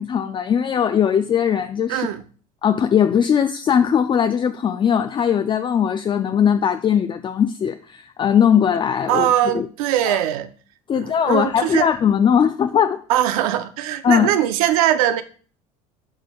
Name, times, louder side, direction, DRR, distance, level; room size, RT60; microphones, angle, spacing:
voice 1, 0.0-2.1 2.6-9.3 9.5-9.7 10.1-10.2 10.9-13.0 14.0-14.3, left 8 dB, 30° left, 0.4 m, -19 dB
voice 2, 1.9-2.2 9.1-10.5 10.9-11.9 13.1-15.2, right 12 dB, 90° right, 0.6 m, -21 dB
11.0 x 4.5 x 2.3 m
supercardioid pair, 95°, 18 cm